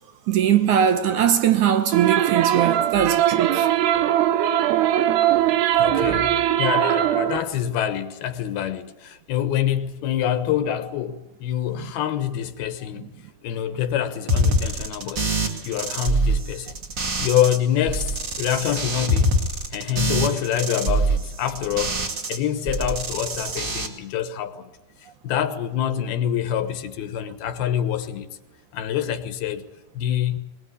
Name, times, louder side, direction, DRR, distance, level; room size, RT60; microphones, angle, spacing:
voice 1, 0.3-3.7, right 9 dB, 65° right, 2.1 m, -20 dB
sound 1, 1.9-7.4, right 12 dB, 85° right, 3.4 m, -20 dB
voice 2, 5.8-13.1 13.4-16.7 17.2-19.4 19.7-22.0 22.3-24.7 25.2-28.3 28.7-29.6 29.9-30.4, left 10 dB, 75° left, 3.0 m, -26 dB
sound 2, 14.3-17.6 17.9-22.4 22.7-23.9, right 1 dB, 35° right, 2.4 m, -24 dB
21.5 x 21.0 x 9.7 m
omnidirectional pair, 4.6 m